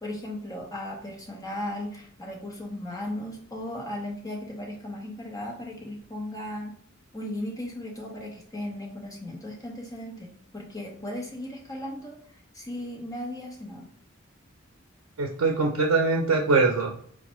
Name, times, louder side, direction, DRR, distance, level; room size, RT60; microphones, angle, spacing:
voice 1, 0.0-6.7 7.1-12.2 12.5-13.9, left 1 dB, 15° left, -1 dB, 0.8 m, -36 dB
voice 2, 15.2-16.9, right 3 dB, 80° right, 2 dB, 0.5 m, -22 dB
4.4 x 2.1 x 3.0 m, 0.63 s
head